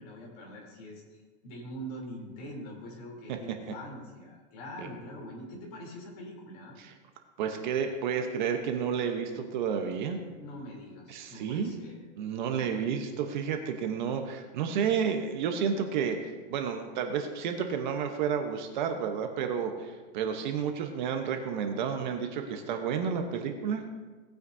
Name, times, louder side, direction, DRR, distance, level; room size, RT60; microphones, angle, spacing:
voice 1, 0.0-6.8 10.4-12.1 12.5-12.9, equal, 35° left, -2 dB, 3.2 m, -44 dB
voice 2, 7.4-10.2 11.1-11.7 12.2-23.8, right 7 dB, 45° right, 5 dB, 1.0 m, -31 dB
18.5 x 9.0 x 2.7 m, 1.4 s
supercardioid pair, 170°, 34 cm